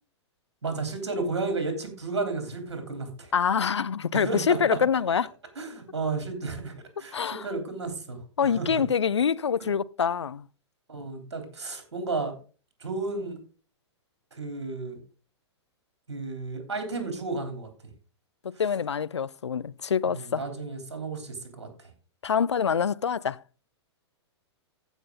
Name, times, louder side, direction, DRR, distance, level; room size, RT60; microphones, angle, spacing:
voice 1, 0.6-3.3 4.1-4.8 5.6-8.8 9.6-9.7 10.9-12.3 12.8-13.4 14.3-15.0 16.1-17.7 20.0-21.7, right 3 dB, 70° right, 3.3 m, -33 dB
voice 2, 3.3-5.3 7.1-7.5 8.4-10.4 18.4-20.4 22.2-23.4, left 7 dB, 75° left, 0.4 m, -25 dB
15.0 x 6.0 x 3.8 m
figure-of-eight pair, 105°, 15 cm